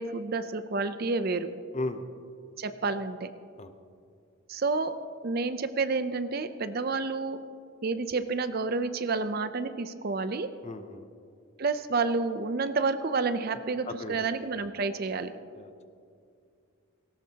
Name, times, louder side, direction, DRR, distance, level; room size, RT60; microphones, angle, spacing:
voice 1, 0.0-1.5 2.6-3.3 4.5-5.0 5.2-7.4 7.8-10.5 11.6-15.3, right 4 dB, 45° right, 11 dB, 0.5 m, -29 dB
voice 2, 1.7-2.0 3.6-3.7 10.6-11.0 13.9-14.2 15.5-15.8, left 2 dB, 30° left, 9 dB, 0.6 m, -36 dB
18.0 x 17.5 x 2.9 m, 2.4 s
head